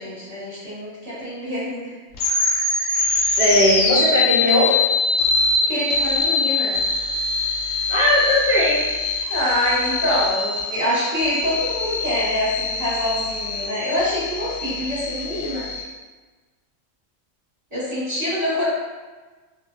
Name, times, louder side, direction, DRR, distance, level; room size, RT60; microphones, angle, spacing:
voice 1, 0.0-1.9 5.7-6.8 9.3-15.7 17.7-18.6, left 1 dB, 30° right, -11 dB, 1.0 m, -25 dB
sound 1, 2.1-15.8, left 3 dB, 75° left, 1.0 m, -23 dB
voice 2, 3.4-4.8 7.9-8.8, left 1 dB, 50° right, -9 dB, 0.5 m, -18 dB
2.6 x 2.4 x 2.5 m, 1.3 s
omnidirectional pair, 1.4 m